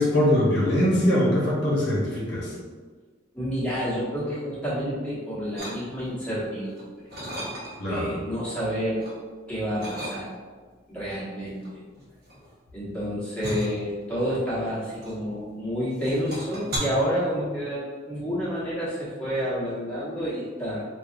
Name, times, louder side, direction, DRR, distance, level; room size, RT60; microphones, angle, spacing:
voice 1, 0.0-2.5 7.8-8.1, left 1 dB, 60° left, -5 dB, 0.9 m, -22 dB
voice 2, 3.3-6.9 7.8-9.1 9.5-10.3 10.9-11.8 12.7-20.8, equal, 5° left, -10 dB, 1.1 m, -29 dB
sound 1, 5.6-6.2 6.7-8.0 8.4-9.2 9.8-10.6 11.4-15.6 15.9-16.8, equal, 55° right, 1.0 m, -37 dB
4.8 x 2.4 x 2.5 m, 1.5 s
head